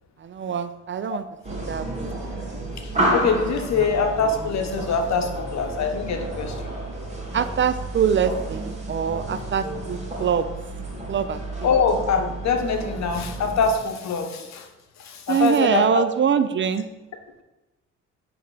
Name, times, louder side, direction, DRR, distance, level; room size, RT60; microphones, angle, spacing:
voice 1, 0.2-1.2 1.5-2.6 7.3-10.5 11.1-11.4 15.3-16.9, right 7 dB, 40° right, 12 dB, 0.5 m, -24 dB
sound 1, 1.4-13.7, right 1 dB, 20° right, 1.9 m, -31 dB
voice 2, 2.8-6.7 11.6-14.7 15.0-16.0, left 5 dB, 65° left, 5 dB, 1.1 m, -24 dB
8.6 x 3.6 x 5.7 m, 1.1 s
cardioid pair, 90°, 30 cm